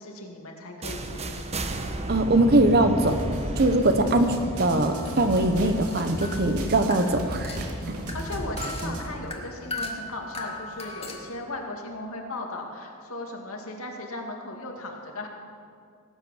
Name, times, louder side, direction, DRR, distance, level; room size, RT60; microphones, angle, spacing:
voice 1, 0.0-1.6 8.1-15.3, left 2 dB, 70° left, 1 dB, 2.3 m, -37 dB
sound 1, 0.8-6.6, right 1 dB, 30° right, 1.0 m, -34 dB
voice 2, 2.1-3.2 3.6-4.3 4.6-7.6, right 2 dB, 50° right, 8 dB, 1.1 m, -21 dB
sound 2, 3.1-9.1, right 1 dB, 85° right, 2.1 m, -34 dB
sound 3, 3.8-11.3, left 2 dB, 30° left, 1.8 m, -40 dB
18.5 x 9.1 x 7.3 m, 2.3 s
head